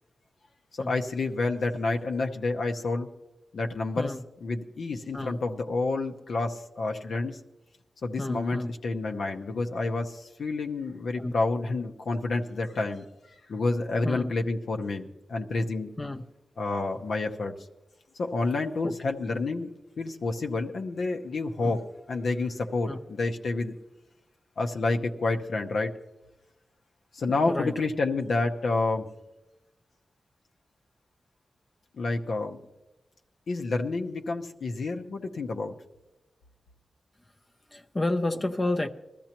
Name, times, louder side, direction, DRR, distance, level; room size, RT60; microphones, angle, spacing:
voice 1, 0.7-3.1 3.5-4.1 4.4-7.4 8.0-13.0 13.5-15.9 16.6-17.5 18.1-19.7 20.0-21.8 22.1-23.8 24.6-25.9 27.1-29.1 31.9-32.6 33.5-35.7, left 3 dB, 75° left, 3 dB, 0.8 m, -29 dB
voice 2, 8.2-8.7 11.2-11.3 14.0-14.3 16.0-16.2 18.8-18.9 21.6-21.8 22.9-23.0 27.3-27.7 37.7-38.9, left 2 dB, 20° left, 5 dB, 0.5 m, -30 dB
21.0 x 13.5 x 3.0 m, 0.99 s
wide cardioid pair, 135°, 0 cm